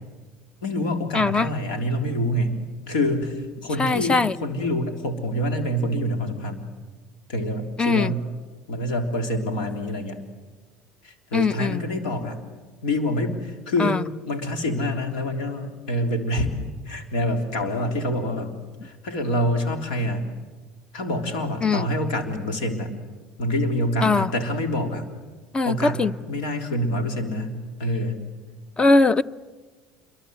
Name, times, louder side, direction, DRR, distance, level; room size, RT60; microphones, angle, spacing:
voice 1, 0.6-2.6 2.9-6.7 7.3-8.2 8.7-10.2 11.0-12.4 12.8-14.0 14.3-16.5 16.8-18.5 18.8-20.2 20.9-23.0 23.4-25.0 25.6-28.2, left 1 dB, 90° left, 5 dB, 3.5 m, -26 dB
voice 2, 1.1-1.5 3.8-4.3 7.8-8.1 11.3-11.8 13.8-14.0 21.6-21.9 24.0-24.3 25.5-26.1 28.8-29.2, left 3 dB, 20° left, 18 dB, 0.8 m, -20 dB
27.5 x 23.5 x 8.1 m, 1.3 s
supercardioid pair, 90°, 4 cm